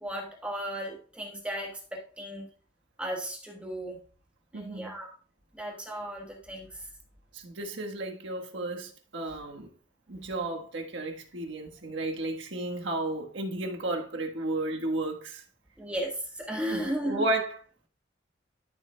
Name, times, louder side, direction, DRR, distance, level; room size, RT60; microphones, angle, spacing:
voice 1, 0.0-2.5 3.0-4.0 4.5-5.1 5.6-6.7 15.8-17.2, right 1 dB, 5° right, 1.3 m, -35 dB
voice 2, 4.5-4.9 7.3-9.7 10.1-15.4 16.5-17.9, right 2 dB, 80° right, 1.4 m, -33 dB
12.0 x 7.3 x 2.2 m
head